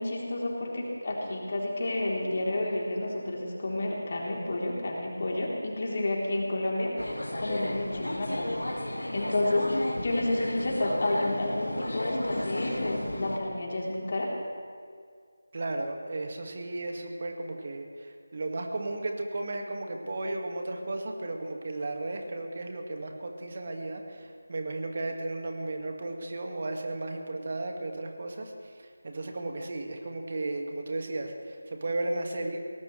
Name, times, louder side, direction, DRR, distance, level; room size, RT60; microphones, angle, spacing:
voice 1, 0.0-7.0 7.4-8.6 9.1-14.3, left 1 dB, 45° left, -3 dB, 3.6 m, -30 dB
sound 1, 7.0-13.4, left 1 dB, 80° left, 1.9 m, -33 dB
voice 2, 15.5-28.5 28.8-32.6, right 2 dB, 45° right, 3 dB, 1.9 m, -34 dB
21.5 x 18.0 x 3.3 m, 2.1 s
figure-of-eight pair, 165°, 0 cm